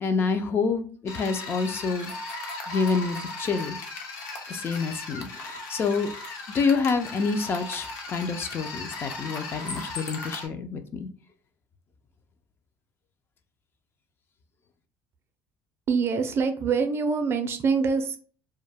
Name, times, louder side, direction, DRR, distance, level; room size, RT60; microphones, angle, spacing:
voice 1, 0.0-2.1 2.7-3.8 4.5-6.1 6.5-11.1, left 4 dB, 35° left, 8 dB, 0.3 m, -27 dB
sound 1, 1.1-10.5, left 2 dB, 65° left, 0.7 m, -37 dB
voice 2, 15.9-18.2, right 5 dB, 40° right, 7 dB, 0.4 m, -25 dB
2.2 x 2.0 x 3.3 m, 0.42 s
supercardioid pair, 105°, 7 cm